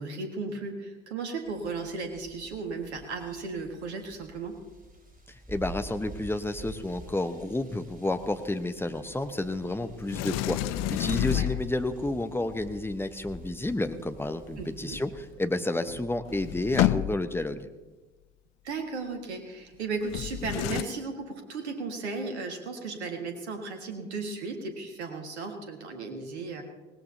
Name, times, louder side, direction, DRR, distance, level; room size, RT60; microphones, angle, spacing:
voice 1, 0.0-4.6 11.3-11.5 14.6-15.0 18.6-26.6, right 4 dB, 75° right, 4 dB, 1.8 m, -35 dB
sound 1, 1.4-15.3, right 1 dB, 25° right, 4.7 m, -47 dB
voice 2, 5.3-17.7, left 2 dB, 5° left, 9 dB, 1.0 m, -31 dB
Sliding door, 10.1-12.0 15.6-15.7 15.9-17.5 20.1-20.8, left 15 dB, 50° left, 0.5 m, -29 dB
21.0 x 18.5 x 2.8 m, 1.2 s
figure-of-eight pair, 55°, 33 cm